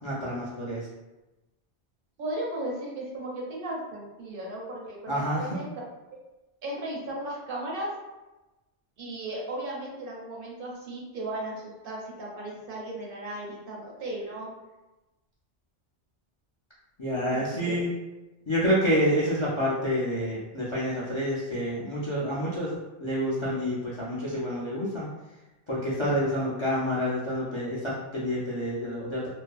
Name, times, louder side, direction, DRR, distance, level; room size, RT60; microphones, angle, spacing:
voice 1, 0.0-0.9 5.1-5.5 17.0-17.9 18.5-25.1 25.7-29.3, equal, 50° left, -7 dB, 0.3 m, -28 dB
voice 2, 2.2-5.7 6.1-6.2 6.6-7.9 9.0-14.5 17.3-17.8, right 1 dB, 60° right, -2 dB, 0.7 m, -36 dB
2.6 x 2.5 x 2.2 m, 1.1 s
omnidirectional pair, 1.1 m